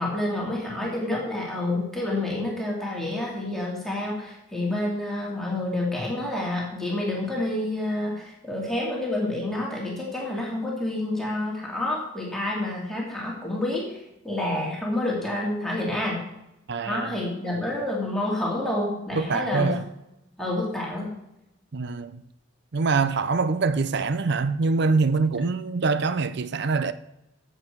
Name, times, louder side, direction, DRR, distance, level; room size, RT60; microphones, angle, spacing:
voice 1, 0.0-14.0 14.2-16.2 16.8-19.8 20.4-21.1, left 1 dB, ahead, 2.7 m, -28 dB
voice 2, 16.7-17.1 19.2-19.8 21.7-22.2 22.7-26.9, right 4 dB, 55° right, 0.6 m, -24 dB
15.5 x 7.6 x 4.7 m
head